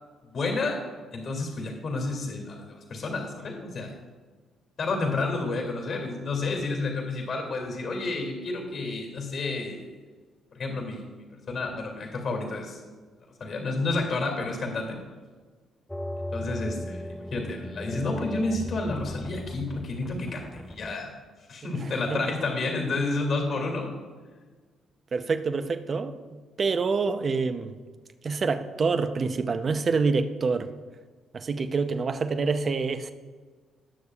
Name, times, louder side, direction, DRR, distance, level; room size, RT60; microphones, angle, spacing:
voice 1, 0.3-0.8 1.1-3.9 4.8-9.9 10.5-12.8 13.4-15.0 16.3-21.1 21.5-23.9, left 3 dB, 55° left, 2 dB, 2.3 m, -30 dB
sound 1, 15.9-20.9, left 1 dB, 5° left, 0.5 m, -37 dB
voice 2, 21.7-22.2 25.1-26.2 26.6-27.8 28.2-30.7 31.3-33.1, right 4 dB, 40° right, 9 dB, 0.6 m, -26 dB
19.0 x 6.7 x 2.4 m, 1.4 s
cardioid pair, 90°, 0 cm